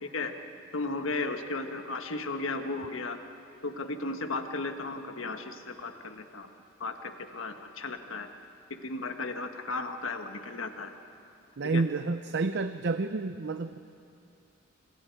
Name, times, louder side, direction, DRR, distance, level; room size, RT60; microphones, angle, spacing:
voice 1, 0.0-0.3 0.7-3.2 3.6-6.5 6.8-8.3 8.7-10.9 11.7-11.8, left 3 dB, 75° left, 6 dB, 1.4 m, -35 dB
voice 2, 11.6-13.8, right 3 dB, 60° right, 10 dB, 0.6 m, -29 dB
28.5 x 26.0 x 4.7 m, 2.6 s
head